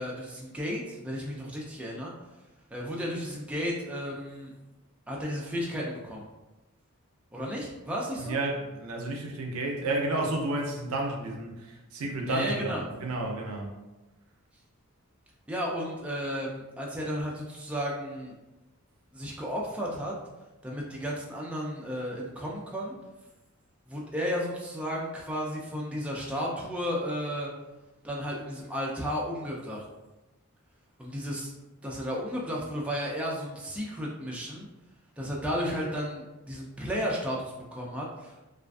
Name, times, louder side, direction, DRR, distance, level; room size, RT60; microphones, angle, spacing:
voice 1, 0.0-2.1 2.7-4.5 5.1-6.2 7.3-8.4 12.3-12.8 15.5-18.3 19.1-20.1 20.6-23.0 23.9-27.5 28.0-29.8 31.0-31.5 31.8-34.7 35.2-38.4, equal, 5° right, -3 dB, 0.3 m, -33 dB
voice 2, 8.2-12.7 13.0-13.8, right 2 dB, 80° right, 2 dB, 0.5 m, -31 dB
2.4 x 2.4 x 2.2 m, 1.1 s
head